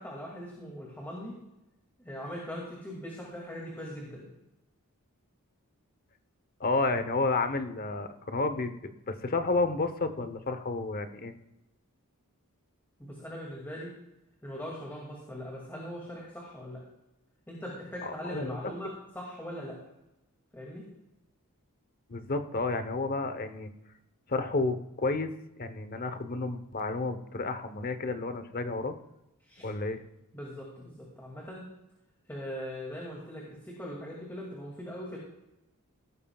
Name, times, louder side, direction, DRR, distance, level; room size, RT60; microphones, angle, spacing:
voice 1, 0.0-1.4 2.0-4.3 13.0-13.9 14.4-16.8 17.5-19.8 20.5-20.9 29.4-29.7 30.3-31.7 32.3-35.2, equal, 10° left, -3 dB, 2.3 m, -40 dB
voice 2, 6.6-11.3 18.0-18.6 22.1-23.7 24.3-25.3 25.6-29.0 29.6-30.0, left 3 dB, 45° left, 10 dB, 0.9 m, -31 dB
16.5 x 12.5 x 2.4 m, 0.91 s
head